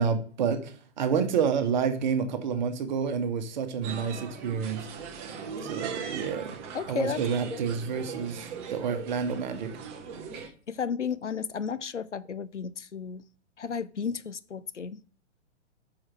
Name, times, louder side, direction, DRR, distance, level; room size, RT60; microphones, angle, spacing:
voice 1, 0.0-4.8 5.6-6.4 6.9-8.4 8.7-9.7, right 6 dB, 40° right, 1.2 m, -28 dB
sound 1, 3.8-10.5, right 6 dB, 20° right, 0.8 m, -39 dB
voice 2, 6.7-7.2 7.5-7.6 10.7-13.2 13.6-15.0, left 6 dB, 80° left, 0.6 m, -33 dB
6.3 x 4.8 x 4.5 m
figure-of-eight pair, 120°, 35 cm